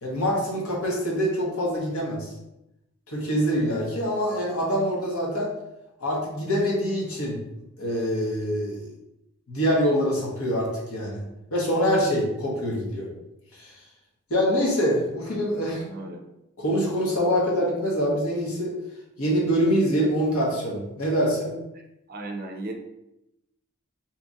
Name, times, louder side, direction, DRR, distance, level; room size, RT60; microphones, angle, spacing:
voice 1, 0.0-2.3 3.1-5.5 6.0-7.4 7.8-8.9 9.5-11.3 11.5-13.1 13.5-13.7 14.3-15.8 16.6-18.7 19.2-21.6, equal, 75° left, -3 dB, 1.0 m, -25 dB
voice 2, 15.6-16.2 22.1-22.7, right 2 dB, 40° right, 3 dB, 0.4 m, -36 dB
2.9 x 2.4 x 3.9 m, 0.88 s
head